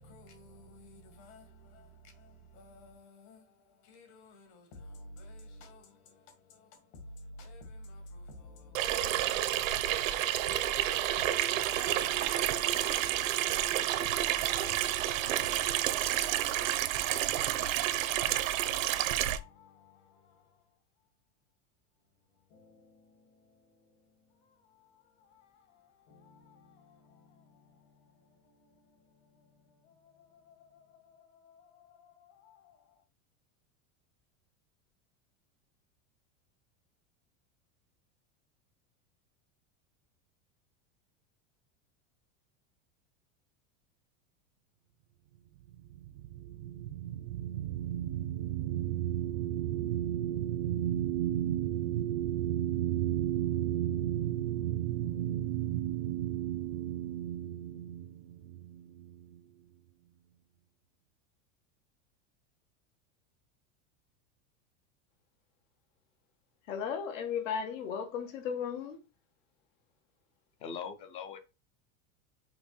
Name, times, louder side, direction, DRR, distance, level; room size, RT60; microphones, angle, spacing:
voice 1, 0.0-16.0 16.3-17.7 18.0-18.4 18.9-20.6 22.5-23.9 24.3-33.0, left 2 dB, 55° left, 2.5 m, -54 dB
Water tap faucet / Sink (filling or washing), 8.7-19.4, right 13 dB, 90° right, 0.9 m, -30 dB
sound 1, 45.7-59.4, right 12 dB, 50° right, 0.4 m, -33 dB
voice 2, 66.7-69.0, left 7 dB, 80° left, 1.6 m, -35 dB
voice 3, 70.6-71.4, left 6 dB, 15° left, 0.4 m, -40 dB
5.6 x 5.1 x 4.3 m
supercardioid pair, 180°, 38 cm